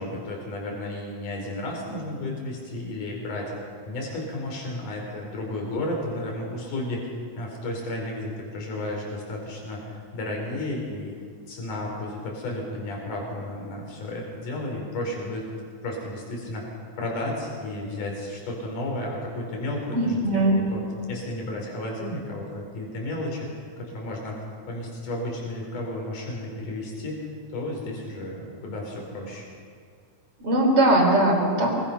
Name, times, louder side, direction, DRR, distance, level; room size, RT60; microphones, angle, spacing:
voice 1, 0.0-3.5 3.9-11.1 11.5-15.5 15.8-16.7 17.0-20.8 21.1-24.4 24.7-29.5, left 1 dB, 70° left, -1 dB, 6.1 m, -33 dB
voice 2, 19.9-20.7 30.4-31.7, right 1 dB, 45° right, 0 dB, 5.1 m, -20 dB
26.0 x 22.5 x 5.9 m, 2.1 s
omnidirectional pair, 3.8 m